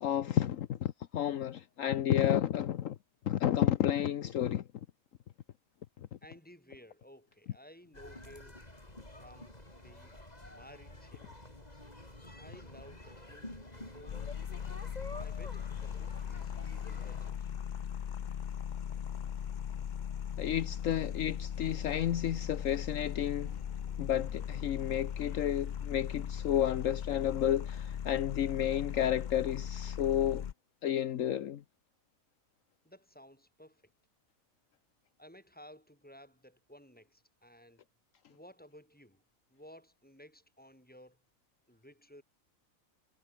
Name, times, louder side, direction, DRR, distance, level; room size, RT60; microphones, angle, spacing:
voice 1, 0.0-3.0 3.3-4.6 20.4-23.6 24.0-30.4 30.8-31.6, left 11 dB, 70° left, 1.2 m, -31 dB
voice 2, 6.2-8.6 9.1-11.3 12.4-14.4 15.2-17.5 32.8-33.8 35.2-37.8 38.3-39.2 39.5-41.2 41.7-42.2, equal, 5° left, 5.9 m, -56 dB
sound 1, 7.9-17.3, left 1 dB, 30° left, 5.0 m, -49 dB
sound 2, 14.1-30.5, left 8 dB, 55° left, 0.5 m, -38 dB
omnidirectional pair, 1.5 m